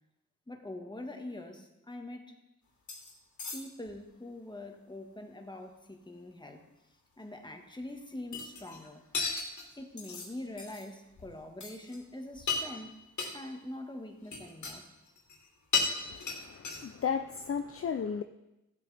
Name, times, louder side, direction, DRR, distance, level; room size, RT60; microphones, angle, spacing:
voice 1, 0.5-2.4 3.5-6.6 7.2-9.0 9.8-13.0 13.3-14.8, left 1 dB, 15° left, 4 dB, 1.7 m, -44 dB
sound 1, 2.9-3.1 3.4-3.9 8.3-8.9 9.1-10.3 10.6-10.8 11.2-11.3 11.6-12.0 12.3-12.8 13.2-13.3 14.2-14.8 15.1-15.5 15.7-17.0, left 5 dB, 60° left, 2.6 m, -35 dB
voice 2, 16.1-18.2, left 7 dB, 45° left, 8 dB, 0.6 m, -34 dB
15.5 x 8.0 x 3.5 m, 0.96 s
cardioid pair, 65°, 33 cm